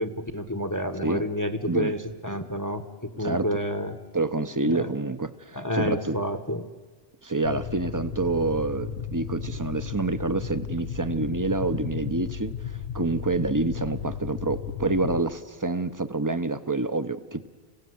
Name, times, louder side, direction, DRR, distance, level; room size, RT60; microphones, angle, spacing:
voice 1, 0.0-2.0 2.2-4.0 4.6-4.9 5.5-6.7, equal, 20° left, 10 dB, 1.0 m, -29 dB
voice 2, 4.1-6.2 7.2-17.5, right 3 dB, 20° right, 12 dB, 0.8 m, -27 dB
sound 1, 7.4-15.2, left 8 dB, 90° left, 1.2 m, -34 dB
27.0 x 16.5 x 9.4 m, 1.4 s
omnidirectional pair, 1.0 m